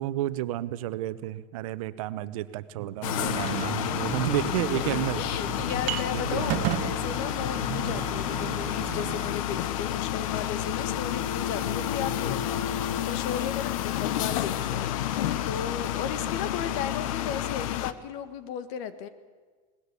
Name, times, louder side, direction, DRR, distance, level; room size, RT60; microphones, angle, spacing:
voice 1, 0.0-5.2 6.1-6.7, right 14 dB, 80° right, 14 dB, 1.0 m, -31 dB
sound 1, 3.0-17.9, left 11 dB, 80° left, 1.1 m, -30 dB
sound 2, 3.2-9.3, right 12 dB, 45° right, 1.3 m, -35 dB
voice 2, 4.4-14.9 15.4-19.1, left 8 dB, 55° left, 12 dB, 1.7 m, -35 dB
20.5 x 19.0 x 8.4 m, 1.5 s
supercardioid pair, 165°, 17 cm